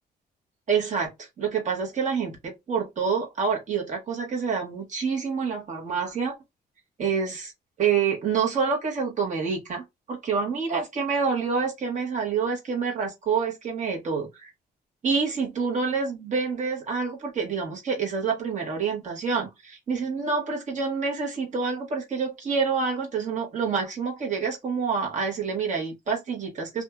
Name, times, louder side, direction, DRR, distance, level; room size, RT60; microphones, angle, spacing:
voice 1, 0.7-6.4 7.0-7.5 7.8-14.5 15.0-26.8, right 5 dB, 45° right, 1.3 m, -27 dB
2.7 x 2.5 x 2.2 m
cardioid pair, 110°, 17 cm